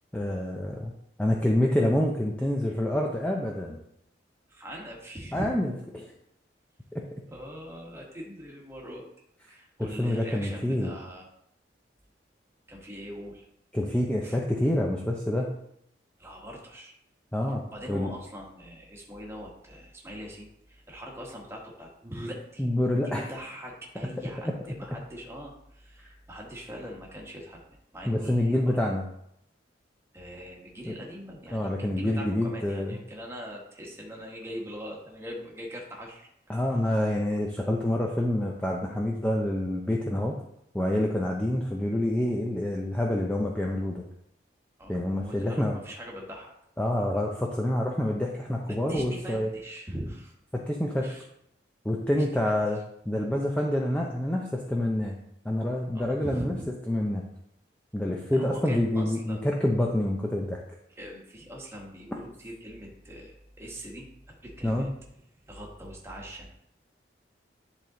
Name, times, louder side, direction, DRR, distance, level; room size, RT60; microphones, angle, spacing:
voice 1, 0.1-0.9 1.2-3.8 5.3-6.1 6.9-7.0 9.8-10.9 13.7-15.6 17.3-17.6 17.9-18.1 22.6-23.2 28.1-29.0 30.9-31.0 31.5-33.0 36.5-40.4 40.7-44.0 44.9-45.7 46.8-49.5 50.5-51.2 51.8-52.8 53.1-55.1 55.4-56.6 56.9-57.2 57.9-60.6 64.6-64.9, left 1 dB, 5° left, -1 dB, 0.5 m, -27 dB
voice 2, 4.5-5.5 7.3-9.1 9.5-11.3 12.7-13.4 14.2-14.4 16.2-16.9 17.7-22.7 23.0-27.6 27.9-28.8 30.1-36.3 44.8-46.5 48.7-50.3 51.0-51.3 52.1-52.5 55.9-56.7 58.3-59.4 60.9-64.9 65.5-66.5, equal, 15° right, -1 dB, 1.2 m, -41 dB
10.0 x 3.6 x 3.8 m, 0.75 s
head